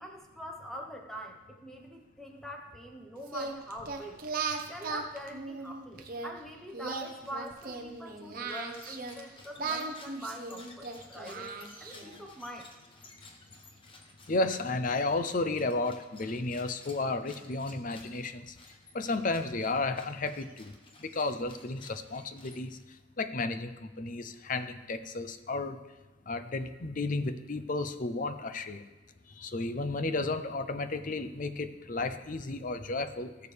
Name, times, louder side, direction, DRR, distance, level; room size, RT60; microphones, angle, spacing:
voice 1, 0.0-4.2 4.7-11.5 11.8-12.7, equal, ahead, 2 dB, 1.0 m, -44 dB
Singing, 3.3-6.3 6.7-9.2 9.6-12.2, right 4 dB, 45° right, 1.0 m, -37 dB
sound 1, 8.4-23.0, left 2 dB, 25° left, 1.1 m, -55 dB
voice 2, 14.3-18.5 18.9-20.7 21.0-22.8 23.2-25.8 26.3-28.8 29.4-33.3, left 3 dB, 40° left, 10 dB, 0.6 m, -33 dB
18.0 x 6.7 x 3.4 m, 1.1 s
head